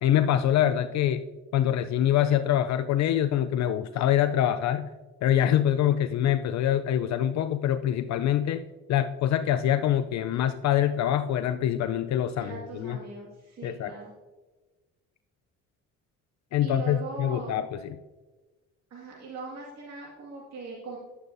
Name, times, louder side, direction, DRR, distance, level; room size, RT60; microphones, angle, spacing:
voice 1, 0.0-1.2 1.5-4.9 5.2-8.6 8.9-13.0 13.6-13.9 16.5-17.8, left 11 dB, 65° left, 10 dB, 0.4 m, -25 dB
voice 2, 12.4-14.1 16.6-17.5 18.9-21.0, right 3 dB, 60° right, -4 dB, 2.1 m, -40 dB
11.0 x 8.0 x 2.6 m, 1.2 s
cardioid pair, 90°, 30 cm